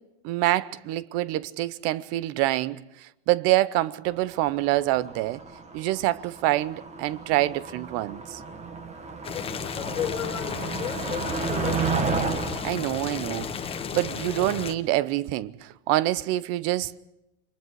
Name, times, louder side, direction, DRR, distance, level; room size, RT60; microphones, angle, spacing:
voice 1, 0.2-5.4 5.7-8.4 12.6-13.5 13.9-17.0, right 16 dB, 40° right, 0.8 m, -26 dB
Motor vehicle (road), 4.1-14.5, right 5 dB, 20° right, 1.7 m, -33 dB
Boiling, 9.2-14.7, left 7 dB, 15° left, 1.2 m, -34 dB
voice 2, 9.3-11.8, left 10 dB, 90° left, 3.2 m, -34 dB
30.0 x 23.0 x 4.7 m
hypercardioid pair, 130°, 35 cm